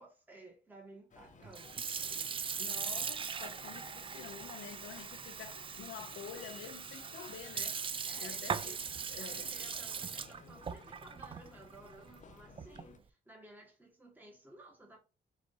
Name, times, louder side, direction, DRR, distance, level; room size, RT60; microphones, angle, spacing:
voice 1, 0.0-1.8 3.2-3.4 8.0-8.8 9.2-15.0, right 2 dB, 10° right, 1.6 m, -56 dB
sound 1, 1.1-13.0, left 5 dB, 40° left, 0.6 m, -57 dB
Sink (filling or washing) / Fill (with liquid), 1.4-13.0, right 6 dB, 25° right, 0.3 m, -40 dB
voice 2, 2.6-7.8 8.2-8.8 9.1-9.5, left 8 dB, 90° left, 0.9 m, -48 dB
7.1 x 2.7 x 2.8 m
cardioid pair, 90°, 20 cm